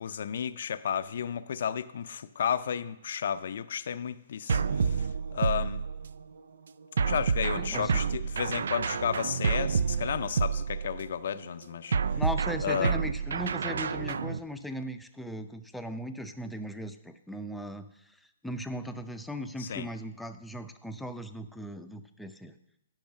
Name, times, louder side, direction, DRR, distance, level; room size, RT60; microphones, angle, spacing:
voice 1, 0.0-5.8 7.0-12.0 12.6-13.0 19.6-19.9, left 8 dB, 65° left, 0.5 m, -32 dB
sound 1, 4.5-6.2 7.0-11.1 11.9-14.4, right 6 dB, 80° right, 0.3 m, -29 dB
voice 2, 7.6-8.0 12.2-18.2 18.4-22.5, equal, ahead, 0.5 m, -38 dB
10.5 x 5.4 x 6.5 m
hypercardioid pair, 145°, 0 cm